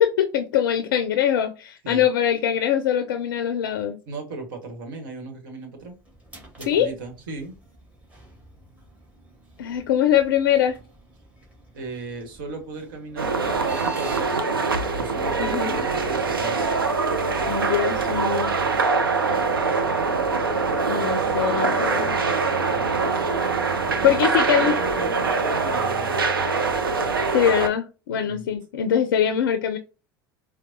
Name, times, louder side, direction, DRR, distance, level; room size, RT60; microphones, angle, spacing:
voice 1, 0.0-4.0 6.7-6.9 9.6-10.8 15.4-15.7 17.5-18.5 20.9-22.2 24.0-24.7 27.3-29.8, left 9 dB, 70° left, 9 dB, 0.4 m, -22 dB
voice 2, 4.1-6.0 6.6-7.5 11.7-13.4 13.7-14.4 14.9-16.7 23.8-26.2 28.1-28.5, right 3 dB, 65° right, 4 dB, 1.2 m, -36 dB
sound 1, 5.8-14.3, right 2 dB, 15° right, 1.8 m, -46 dB
sound 2, 13.2-27.7, right 4 dB, 85° right, 0.5 m, -23 dB
4.5 x 2.1 x 2.7 m, 0.31 s
figure-of-eight pair, 75°, 12 cm